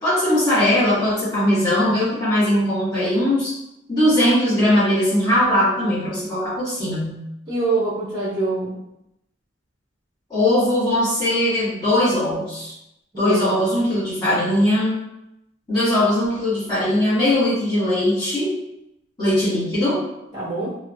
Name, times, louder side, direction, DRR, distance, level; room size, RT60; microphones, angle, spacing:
voice 1, 0.0-3.5 3.9-7.2 10.3-12.7 13.2-14.9 15.7-18.5 19.2-20.0, left 1 dB, 25° left, -12 dB, 1.2 m, -20 dB
voice 2, 7.5-8.8 13.1-13.7 20.3-20.8, right 3 dB, 25° right, -6 dB, 0.6 m, -24 dB
2.7 x 2.2 x 2.6 m, 0.83 s
head